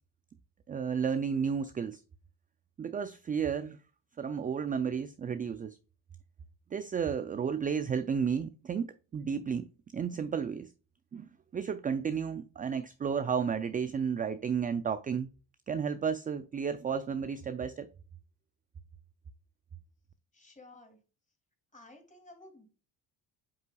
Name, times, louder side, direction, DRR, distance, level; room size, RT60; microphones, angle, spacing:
voice 1, 0.7-2.0 2.8-3.8 4.2-5.8 6.7-9.7 9.9-10.7 11.1-15.3 15.7-17.9, right 6 dB, 20° right, 0.3 m, -32 dB
voice 2, 20.3-21.0 21.7-22.7, left 2 dB, 15° left, 2.7 m, -54 dB
7.8 x 5.5 x 2.3 m
cardioid pair, 100°, 42 cm